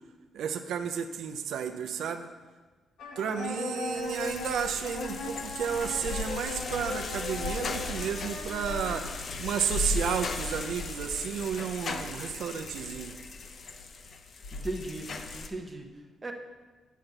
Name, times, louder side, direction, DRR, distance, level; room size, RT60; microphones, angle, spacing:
voice 1, 0.3-2.3 3.2-9.1 9.4-13.2, right 7 dB, 75° right, 7 dB, 0.5 m, -32 dB
sound 1, 3.0-9.1, left 3 dB, 70° left, 1.1 m, -38 dB
sound 2, 3.9-15.5, left 3 dB, 40° left, 0.6 m, -37 dB
voice 2, 14.5-16.3, right 2 dB, 15° right, 3 dB, 0.8 m, -38 dB
8.3 x 5.9 x 6.6 m, 1.3 s
cardioid pair, 170°, 0 cm